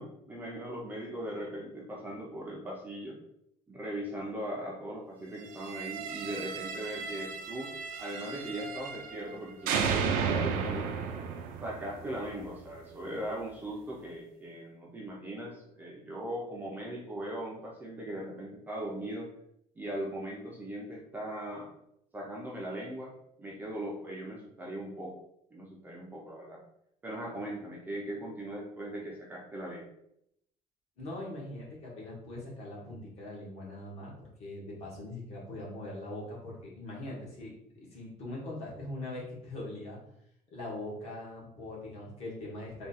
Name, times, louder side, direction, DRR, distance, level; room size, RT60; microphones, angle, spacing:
voice 1, 0.0-3.2 3.7-7.7 8.0-10.9 11.6-19.3 19.8-21.7 22.1-23.1 23.4-25.1 25.5-26.6 27.0-29.9, right 1 dB, 15° right, -3 dB, 0.5 m, -39 dB
sound 1, 5.5-9.3 9.7-12.7, right 6 dB, 80° right, 0.5 m, -34 dB
voice 2, 31.0-40.0 40.5-42.9, left 1 dB, 50° left, -4 dB, 1.4 m, -41 dB
3.6 x 2.3 x 4.0 m, 0.76 s
cardioid pair, 180°, 14 cm